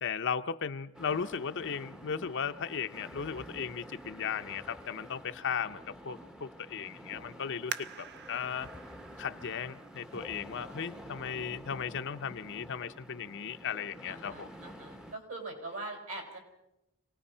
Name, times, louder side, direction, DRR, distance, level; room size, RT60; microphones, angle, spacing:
voice 1, 0.0-8.7 9.2-14.5, left 7 dB, 55° left, 9 dB, 0.7 m, -36 dB
sound 1, 0.9-15.2, equal, 5° right, 0.8 m, -49 dB
sound 2, 7.7-11.1 11.7-11.8 12.4-12.8 13.2-13.3, right 8 dB, 50° right, 0.7 m, -45 dB
voice 2, 14.0-16.4, right 2 dB, 65° right, 3 dB, 5.7 m, -42 dB
27.0 x 18.5 x 5.6 m, 0.91 s
head